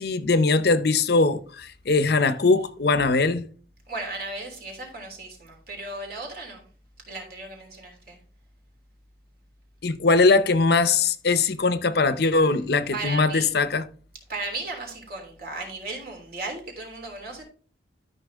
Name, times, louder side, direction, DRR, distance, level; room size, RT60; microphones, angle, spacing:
voice 1, 0.0-3.5 9.8-13.8, left 3 dB, 55° left, 0.6 m, -21 dB
voice 2, 3.9-6.6 7.1-8.2 12.9-13.5 14.3-17.4, right 2 dB, 55° right, 3.3 m, -35 dB
12.5 x 5.8 x 3.5 m
head